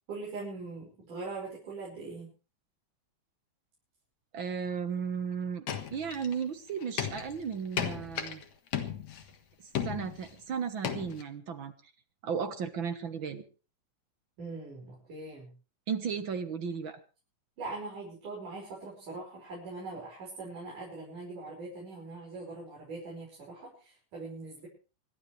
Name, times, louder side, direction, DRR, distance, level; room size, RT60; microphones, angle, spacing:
voice 1, 0.1-2.3 14.4-15.5 17.6-24.7, right 3 dB, 80° right, -4 dB, 7.3 m, -42 dB
voice 2, 4.3-8.4 9.8-11.7 12.2-13.4 15.9-17.0, right 6 dB, 50° right, 8 dB, 1.6 m, -35 dB
sound 1, 5.7-6.4 6.8-8.4 8.7-9.3 9.7-10.3 10.8-11.2, left 8 dB, 60° left, 2.7 m, -35 dB
27.5 x 12.0 x 3.3 m, 0.35 s
omnidirectional pair, 3.6 m